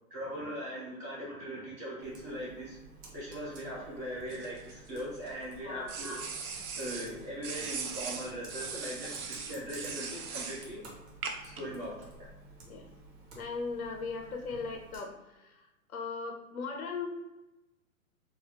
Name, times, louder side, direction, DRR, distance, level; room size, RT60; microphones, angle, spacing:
voice 1, 0.1-2.8 3.1-6.2 6.8-10.8 11.4-12.3, equal, 15° right, -7 dB, 0.3 m, -40 dB
Computer keyboard, 2.0-15.0, right 2 dB, 30° right, 0.7 m, -53 dB
sound 1, 4.3-5.3 5.9-7.1 7.4-10.6 11.2-11.6, right 5 dB, 85° right, 0.6 m, -39 dB
voice 2, 13.3-17.1, left 4 dB, 85° left, 3 dB, 0.7 m, -38 dB
3.3 x 2.0 x 2.6 m, 1.0 s
hypercardioid pair, 120°, 43 cm